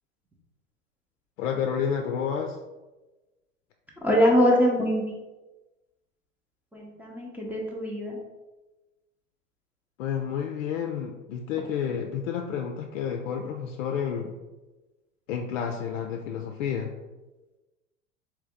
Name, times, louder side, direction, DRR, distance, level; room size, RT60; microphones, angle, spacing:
voice 1, 1.4-2.6 10.0-14.4 15.3-16.9, left 7 dB, 65° left, 4 dB, 0.5 m, -30 dB
voice 2, 4.0-5.2 6.7-8.2, equal, 5° right, -3 dB, 0.6 m, -23 dB
3.3 x 3.0 x 3.4 m, 1.1 s
hypercardioid pair, 90°, 40 cm